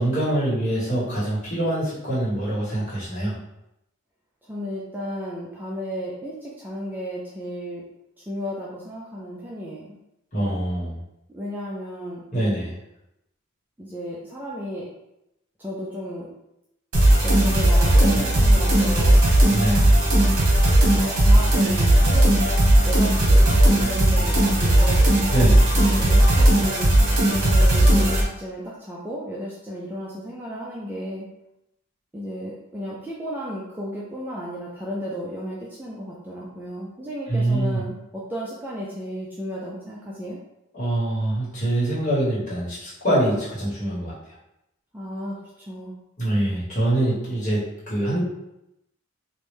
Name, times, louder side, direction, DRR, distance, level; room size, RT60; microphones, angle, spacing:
voice 1, 0.0-3.3 10.3-10.9 12.3-12.7 19.5-19.9 25.3-25.6 37.3-37.8 40.7-44.1 46.2-48.2, right 1 dB, 35° left, -9 dB, 1.5 m, -24 dB
voice 2, 4.4-7.8 8.2-9.9 11.3-12.2 13.8-14.9 15.6-16.3 17.2-19.2 20.9-22.3 22.8-25.0 25.9-26.9 27.3-31.3 32.1-40.4 44.9-45.4 45.7-45.9, equal, 10° right, -5 dB, 0.3 m, -33 dB
sound 1, 16.9-28.2, right 1 dB, 75° right, 1.0 m, -17 dB
3.1 x 2.6 x 3.4 m, 0.86 s
head